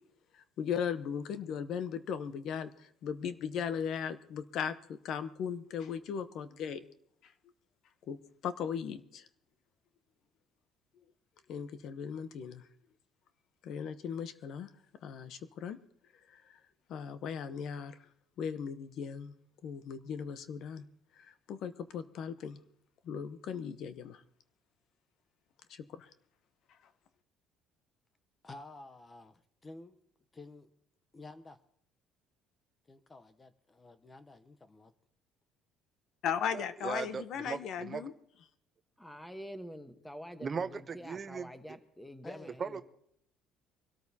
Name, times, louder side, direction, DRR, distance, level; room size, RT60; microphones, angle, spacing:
voice 1, 0.3-6.8 7.2-7.3 8.1-9.3 11.5-12.6 13.6-14.7 15.0-15.8 16.3-16.6 16.9-18.0 18.4-19.3 19.6-20.8 21.2-22.6 23.0-24.2 25.7-26.1 36.2-38.1, left 7 dB, 60° left, 12 dB, 0.8 m, -37 dB
voice 2, 28.4-30.0 30.3-30.7 31.1-31.6 32.9-34.9 42.2-42.6, left 2 dB, 20° left, 11 dB, 0.7 m, -51 dB
voice 3, 36.5-38.1 40.4-41.8 42.6-42.8, right 5 dB, 30° right, 11 dB, 0.6 m, -39 dB
voice 4, 39.0-42.8, equal, 5° left, 9 dB, 1.1 m, -47 dB
24.5 x 13.0 x 2.8 m, 0.69 s
cardioid pair, 130°, 0 cm